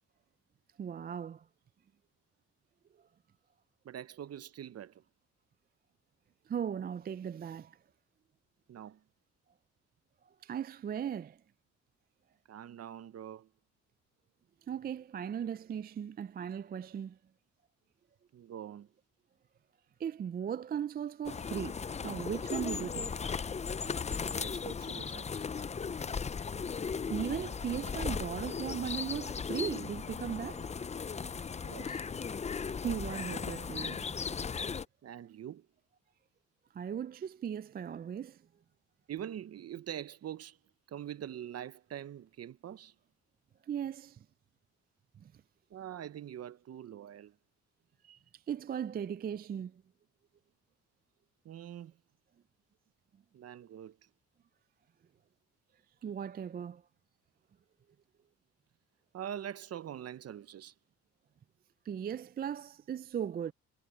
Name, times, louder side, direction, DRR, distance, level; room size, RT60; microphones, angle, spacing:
voice 1, 0.8-1.4 6.5-7.8 10.4-11.4 14.7-17.2 20.0-23.2 27.1-30.7 32.8-34.1 36.7-38.4 43.7-44.2 45.2-45.3 48.5-49.7 56.0-56.8 61.9-63.5, right 8 dB, 30° right, 0.4 m, -37 dB
voice 2, 3.8-5.0 8.7-9.0 12.5-13.5 18.3-18.9 24.3-25.5 31.6-32.0 35.0-35.7 39.1-40.6 40.9-42.9 45.7-47.4 48.0-48.2 51.4-52.0 53.3-54.0 59.1-60.7, right 10 dB, 55° right, 0.9 m, -44 dB
sound 1, 21.2-34.8, left 5 dB, 25° left, 0.5 m, -37 dB
cardioid pair, 90°, 30 cm